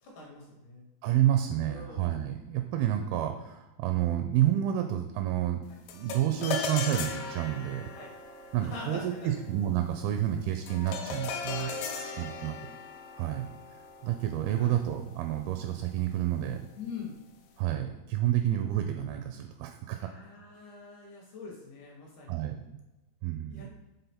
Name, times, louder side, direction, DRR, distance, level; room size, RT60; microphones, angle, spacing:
voice 1, 0.0-0.9 1.7-2.2 5.7-5.8 7.9-8.1 8.6-9.3 11.5-12.5 14.5-14.7 16.7-17.2 20.0-22.3 23.5-23.7, left 4 dB, 70° left, -2 dB, 2.0 m, -44 dB
voice 2, 1.0-5.6 5.9-7.9 8.5-11.7 12.2-12.5 13.2-16.6 17.6-20.1 22.3-22.8 23.2-23.7, right 12 dB, 85° right, 6 dB, 2.2 m, -29 dB
sound 1, 5.9-15.4, left 4 dB, 85° left, 1.9 m, -38 dB
6.9 x 3.9 x 4.2 m, 1.0 s
omnidirectional pair, 4.7 m